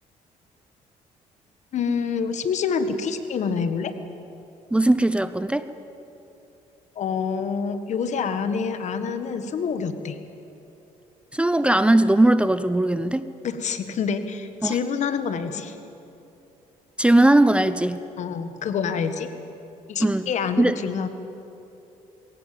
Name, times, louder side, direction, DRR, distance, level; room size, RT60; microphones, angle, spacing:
voice 1, 1.7-3.9 6.9-10.2 13.4-15.8 18.2-19.3 19.9-21.1, left 6 dB, 60° left, 10 dB, 1.5 m, -27 dB
voice 2, 4.7-5.7 11.3-13.3 14.6-14.8 17.0-18.0 20.0-20.3 20.6-20.8, right 1 dB, 10° right, 13 dB, 0.6 m, -19 dB
21.0 x 18.0 x 7.7 m, 2.9 s
cardioid pair, 100°, 14 cm